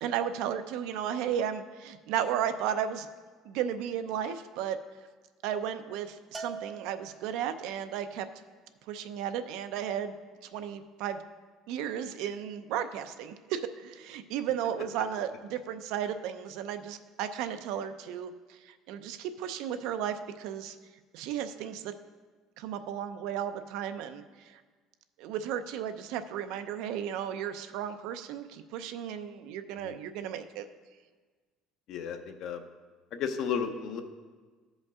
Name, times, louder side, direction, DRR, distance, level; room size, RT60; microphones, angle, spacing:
voice 1, 0.0-3.1 3.4-4.8 5.4-8.3 8.9-10.1 10.5-11.2 11.7-20.8 21.1-21.9 22.6-24.6 25.2-30.6, right 9 dB, 75° right, 9 dB, 0.5 m, -34 dB
Bell, 6.3-7.7, right 4 dB, 15° right, 0.5 m, -43 dB
voice 2, 31.9-32.6 33.1-34.0, left 7 dB, 50° left, 7 dB, 0.7 m, -33 dB
15.0 x 5.2 x 3.6 m, 1.4 s
cardioid pair, 160°, 0 cm